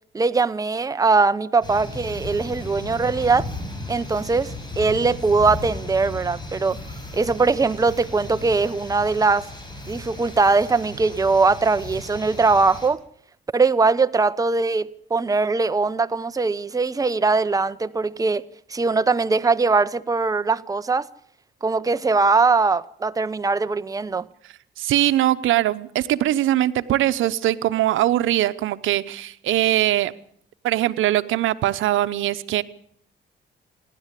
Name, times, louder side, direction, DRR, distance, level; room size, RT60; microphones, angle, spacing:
voice 1, 0.1-3.5 3.9-6.8 7.1-9.5 9.9-13.0 13.5-18.4 18.7-21.1 21.6-24.2, right 4 dB, 15° right, 0.8 m, -21 dB
sound 1, 1.6-12.9, left 2 dB, 20° left, 5.7 m, -36 dB
voice 2, 24.4-30.1 30.6-32.6, right 14 dB, 80° right, 0.9 m, -21 dB
27.0 x 11.5 x 8.3 m
cardioid pair, 90°, 20 cm